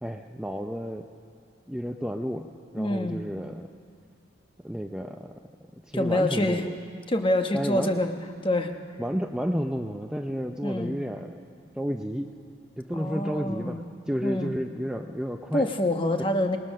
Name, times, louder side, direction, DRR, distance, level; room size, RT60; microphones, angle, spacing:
voice 1, 0.0-1.0 1.7-3.7 4.6-5.4 5.7-6.7 7.5-8.0 9.0-11.4 11.7-12.3 12.8-15.7, equal, 5° right, 4 dB, 0.5 m, -31 dB
voice 2, 2.8-3.2 5.9-6.7 7.1-8.1 8.4-8.7 10.6-10.9 12.9-13.8 14.2-14.5 15.5-16.6, left 1 dB, 25° left, 5 dB, 1.1 m, -26 dB
27.5 x 19.5 x 6.5 m, 2.2 s
head